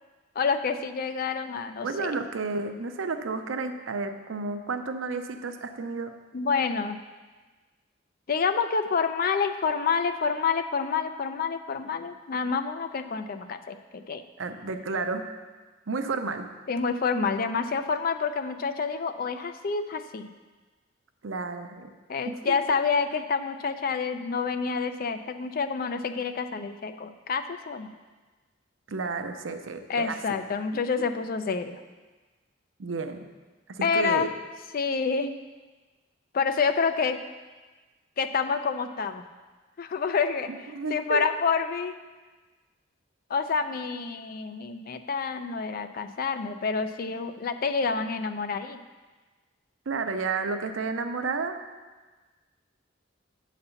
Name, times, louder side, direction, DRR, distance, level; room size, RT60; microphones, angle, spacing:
voice 1, 0.4-2.1 6.3-7.0 8.3-14.2 16.7-20.3 22.1-27.9 29.9-31.8 33.8-34.3 34.7-35.4 36.3-37.2 38.2-39.2 39.8-42.0 43.3-48.8, left 5 dB, 50° left, 9 dB, 0.4 m, -28 dB
voice 2, 1.8-6.1 14.4-15.3 15.9-16.5 21.2-21.9 22.2-22.6 28.9-30.2 30.7-30.8 32.8-33.2 33.7-34.3 40.7-41.2 49.9-51.6, right 4 dB, 80° right, 7 dB, 0.6 m, -31 dB
7.8 x 4.2 x 6.9 m, 1.3 s
head